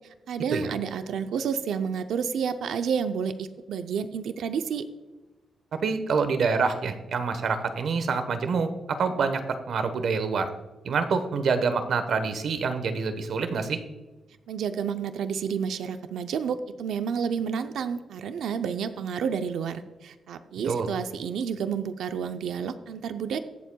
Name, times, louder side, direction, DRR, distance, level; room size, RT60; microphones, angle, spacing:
voice 1, 0.3-4.9 14.5-23.4, right 7 dB, 85° right, 9 dB, 0.5 m, -30 dB
voice 2, 5.7-9.4 9.7-10.5 10.8-13.8 20.7-20.9, right 5 dB, 65° right, 8 dB, 1.1 m, -26 dB
22.0 x 7.4 x 2.3 m, 1.2 s
cardioid pair, 120°, 0 cm